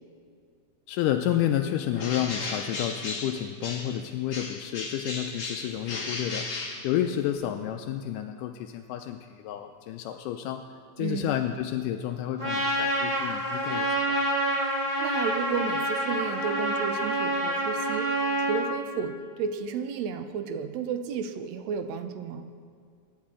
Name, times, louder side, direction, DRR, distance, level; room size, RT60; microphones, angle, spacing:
voice 1, 0.9-6.5 6.8-10.6 11.0-14.2, left 11 dB, 85° left, 6 dB, 2.1 m, -30 dB
Bird, 1.9-4.0 4.3-7.4, left 3 dB, 45° left, 1.0 m, -35 dB
voice 2, 11.0-11.3 15.0-22.5, right 6 dB, 70° right, 8 dB, 1.8 m, -32 dB
Trumpet, 12.4-18.6, right 1 dB, 25° right, 3.1 m, -27 dB
23.5 x 10.5 x 3.7 m, 2.2 s
omnidirectional pair, 3.7 m